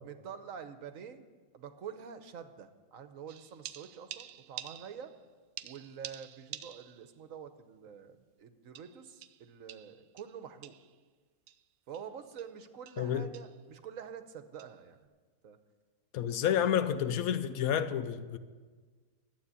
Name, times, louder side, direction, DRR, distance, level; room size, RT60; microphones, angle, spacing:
voice 1, 0.0-1.2 1.5-5.1 5.6-10.8 11.9-15.1 15.4-15.6 16.3-16.6, right 7 dB, 70° right, 1.2 m, -47 dB
sound 1, 3.3-5.2 5.6-7.1 7.5-7.6 8.7-11.0 11.5-11.6 11.9-12.1 12.4-12.6 12.9-13.1 13.3-13.6 14.6-14.8, right 11 dB, 85° right, 1.0 m, -48 dB
voice 2, 13.0-13.3 16.1-18.4, left 9 dB, 85° left, 1.1 m, -30 dB
11.5 x 8.2 x 8.3 m
omnidirectional pair, 1.5 m